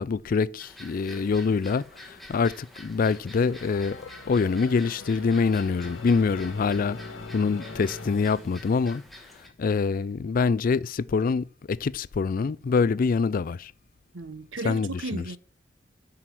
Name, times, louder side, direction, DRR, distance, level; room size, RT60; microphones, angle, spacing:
voice 1, 0.0-7.0 7.3-9.0 9.6-13.7 14.6-15.2, left 5 dB, 50° left, 0.4 m, -25 dB
sound 1, 0.6-9.5, equal, ahead, 1.6 m, -48 dB
sound 2, 3.5-9.1, left 3 dB, 90° left, 1.7 m, -42 dB
voice 2, 14.1-15.4, right 2 dB, 80° right, 0.9 m, -35 dB
7.9 x 6.0 x 7.4 m
head